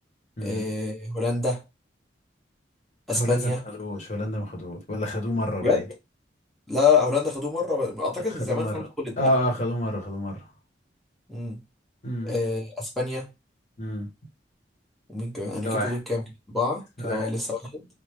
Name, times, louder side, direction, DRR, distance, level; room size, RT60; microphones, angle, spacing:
voice 1, 0.4-1.6 3.1-3.6 5.6-5.8 6.7-9.2 11.3-11.6 12.2-13.3 15.1-17.9, left 4 dB, ahead, 1.0 m, -26 dB
voice 2, 3.1-5.8 8.2-8.8 9.2-10.4 12.0-12.3 13.8-14.1 15.6-16.0 17.0-17.3, equal, 40° left, 1.0 m, -28 dB
3.2 x 2.0 x 3.2 m
head